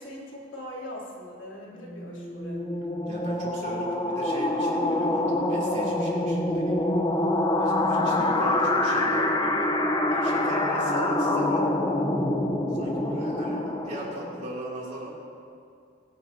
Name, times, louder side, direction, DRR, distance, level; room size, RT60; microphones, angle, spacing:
voice 1, 0.0-2.6 7.8-8.2 10.1-10.4, equal, 80° left, -5 dB, 3.2 m, -41 dB
sound 1, 1.9-14.5, left 1 dB, 25° left, 0.9 m, -26 dB
voice 2, 3.0-6.9 7.6-9.7 10.1-11.7 12.7-15.2, right 1 dB, 40° right, -5 dB, 3.0 m, -38 dB
22.5 x 10.5 x 2.9 m, 2.4 s
head